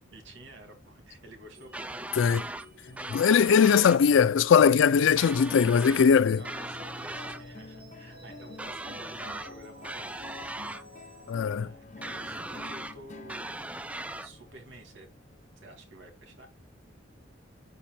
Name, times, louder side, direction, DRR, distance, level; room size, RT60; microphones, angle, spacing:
voice 1, 0.1-2.5 6.4-10.3 10.8-10.9 11.5-13.6 14.0-15.1 15.6-16.5, right 1 dB, 70° right, 2.3 m, -51 dB
sound 1, 1.5-11.5, right 1 dB, 45° right, 1.5 m, -54 dB
sound 2, 1.7-2.7 3.0-4.0 5.2-6.1 6.4-7.4 8.6-9.5 9.8-10.8 12.0-12.9 13.3-14.3, right 2 dB, 5° right, 0.3 m, -38 dB
sound 3, 2.9-15.6, left 3 dB, 35° left, 0.8 m, -49 dB
voice 2, 3.1-6.4 11.3-11.7, left 7 dB, 70° left, 0.3 m, -20 dB
11.5 x 4.3 x 2.2 m
head